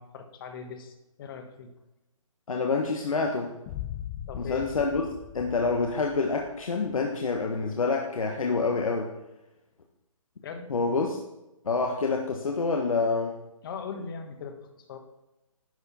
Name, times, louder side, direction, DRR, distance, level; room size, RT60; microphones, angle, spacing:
voice 1, 0.0-1.7 4.3-4.7 10.4-10.7 13.6-15.0, left 6 dB, 40° left, 6 dB, 1.5 m, -39 dB
voice 2, 2.5-3.5 4.3-5.0 5.3-9.1 10.7-11.2 11.6-13.4, left 4 dB, 75° left, 1 dB, 1.3 m, -27 dB
Boom, 3.7-6.6, left 11 dB, 20° left, 0.6 m, -40 dB
11.0 x 6.7 x 4.3 m, 0.94 s
hypercardioid pair, 145°, 18 cm